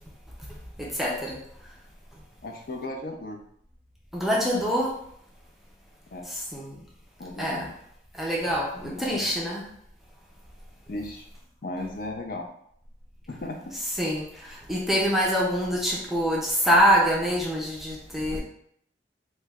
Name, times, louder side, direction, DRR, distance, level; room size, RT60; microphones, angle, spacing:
voice 1, 0.8-1.4 4.1-4.9 6.3-6.7 7.4-7.7 8.2-9.6 14.0-14.3 14.7-18.4, equal, ahead, -3 dB, 0.5 m, -25 dB
voice 2, 2.4-3.4 6.1-6.3 7.2-7.7 8.8-9.2 10.9-11.3 11.6-12.5 13.3-13.6, left 2 dB, 50° left, 2 dB, 0.5 m, -35 dB
3.0 x 2.2 x 3.4 m, 0.67 s
head